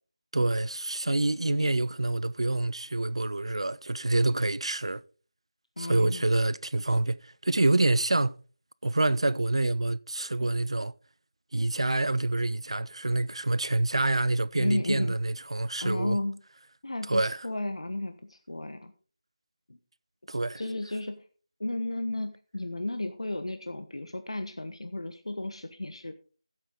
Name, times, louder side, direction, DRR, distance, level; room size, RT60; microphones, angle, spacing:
voice 1, 0.3-5.0 5.8-8.4 8.8-10.9 11.5-16.2 17.1-17.4 20.3-20.6, right 2 dB, 65° right, 0.5 m, -27 dB
voice 2, 5.8-6.3 14.6-15.1 15.8-16.4 16.8-18.9 19.7-19.8 20.6-21.2 21.6-26.1, left 2 dB, 65° left, 1.2 m, -33 dB
15.0 x 8.2 x 3.9 m
figure-of-eight pair, 165°, 3 cm